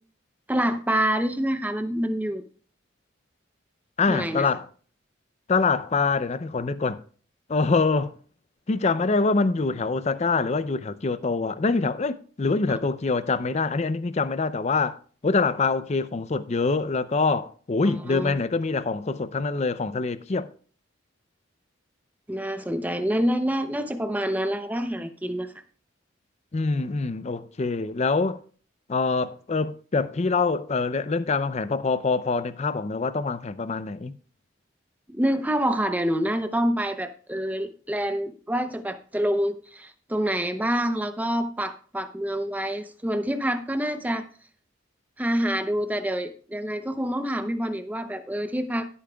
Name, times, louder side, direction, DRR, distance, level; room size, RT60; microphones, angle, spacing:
voice 1, 0.5-2.4 4.1-4.5 12.7-12.8 17.8-18.4 22.3-25.5 35.1-44.2 45.2-48.9, equal, 10° right, 0.7 m, -27 dB
voice 2, 4.0-4.7 5.5-7.0 7.5-8.1 8.7-15.0 15.2-20.5 26.5-28.4 28.9-34.2, left 4 dB, 35° left, 0.5 m, -25 dB
15.5 x 8.6 x 2.3 m
head